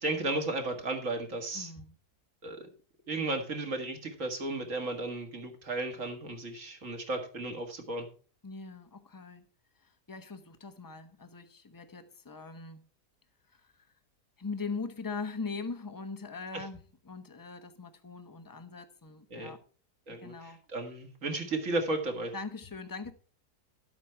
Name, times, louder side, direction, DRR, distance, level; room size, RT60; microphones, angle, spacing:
voice 1, 0.0-1.7 2.4-2.7 3.1-8.1 16.5-16.6 19.3-19.5 20.1-22.3, right 2 dB, 50° right, 2.2 m, -34 dB
voice 2, 1.5-1.9 8.4-9.5 9.8-12.9 13.5-13.9 14.4-16.8 17.0-19.6 20.1-20.6 22.3-23.1, left 4 dB, 15° left, 0.7 m, -41 dB
12.0 x 8.3 x 4.5 m
omnidirectional pair, 1.8 m